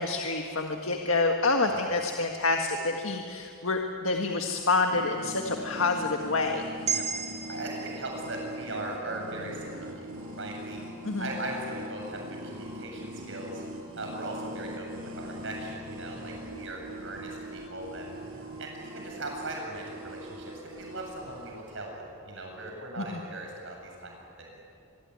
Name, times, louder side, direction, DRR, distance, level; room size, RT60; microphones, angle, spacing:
voice 1, 0.0-6.6 11.0-11.3 23.0-23.1, left 3 dB, 75° left, 3 dB, 1.7 m, -27 dB
sound 1, 4.9-21.7, equal, 80° right, 5.9 m, -42 dB
sound 2, 6.9-11.1, right 7 dB, 35° right, 1.9 m, -37 dB
voice 2, 7.3-13.6 13.9-18.2 18.6-24.6, right 2 dB, 65° right, 1 dB, 7.5 m, -39 dB
25.5 x 22.0 x 9.8 m, 2.6 s
head